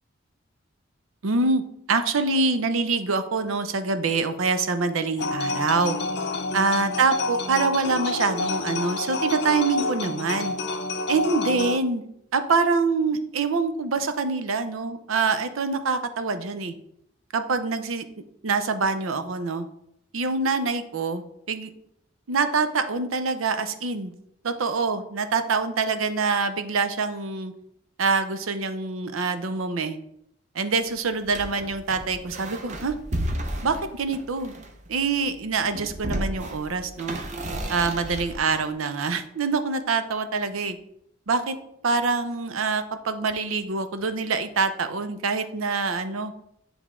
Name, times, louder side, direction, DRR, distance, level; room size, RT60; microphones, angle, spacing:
voice 1, 1.2-1.6 1.9-6.0 6.5-10.5 11.1-12.0 12.3-16.7 17.3-18.0 18.4-19.7 20.1-21.7 22.3-24.1 24.4-27.5 28.0-30.0 30.5-32.9 33.6-34.5 34.9-37.2 37.7-40.8 41.3-41.6 41.8-46.3, right 4 dB, 85° right, 10 dB, 0.6 m, -25 dB
sound 1, 5.2-11.8, left 3 dB, 55° left, 0.6 m, -28 dB
sound 2, 31.2-34.9 35.6-38.7, right 1 dB, 35° right, 0.7 m, -33 dB
10.0 x 3.5 x 3.6 m, 0.75 s
head